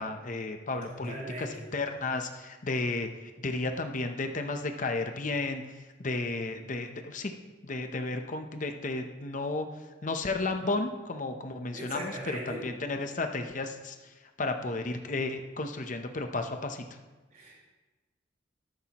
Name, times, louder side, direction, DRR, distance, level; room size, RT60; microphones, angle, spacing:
voice 1, 0.0-7.3 7.6-9.7 10.0-16.8, left 3 dB, 45° left, 6 dB, 0.7 m, -33 dB
voice 2, 0.9-1.5 11.7-12.7 17.3-17.6, right 1 dB, 45° right, -4 dB, 4.1 m, -39 dB
13.0 x 12.5 x 3.0 m, 1.2 s
head